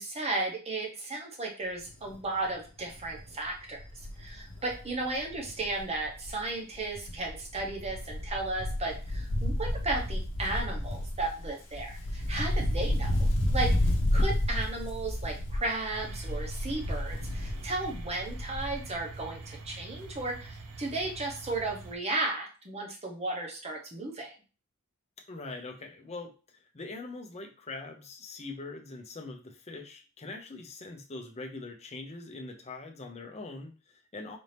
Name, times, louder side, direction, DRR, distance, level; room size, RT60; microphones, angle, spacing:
voice 1, 0.0-3.8 4.2-13.1 13.5-13.8 14.1-24.3, right 2 dB, 30° right, 1 dB, 0.9 m, -34 dB
Wind, 1.9-2.2 2.5-2.6 2.9-6.5 6.7-18.9 19.2-19.3, left 1 dB, 60° left, 0.8 m, -31 dB
sound 1, 15.9-22.0, right 3 dB, 75° right, 0.7 m, -45 dB
voice 2, 25.3-26.3 26.7-34.4, left 3 dB, 30° left, 3 dB, 0.6 m, -42 dB
4.2 x 2.7 x 3.3 m, 0.35 s
head